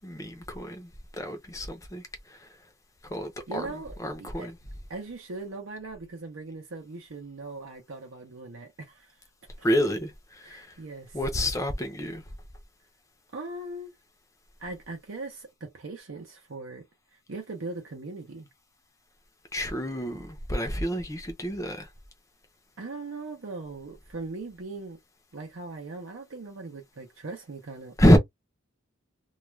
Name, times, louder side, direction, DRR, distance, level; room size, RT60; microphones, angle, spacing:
voice 1, 0.0-0.9 1.2-2.5 3.0-3.7 4.0-4.6 9.6-10.8 11.1-12.2 19.5-21.9 28.0-28.2, equal, 15° left, 0.5 m, -27 dB
voice 2, 3.5-4.5 4.9-9.1 9.6-9.7 10.4-11.2 13.3-13.9 14.6-16.8 17.1-18.5 22.8-25.0 25.3-28.0, right 3 dB, 65° right, 0.6 m, -40 dB
2.3 x 2.2 x 3.0 m
head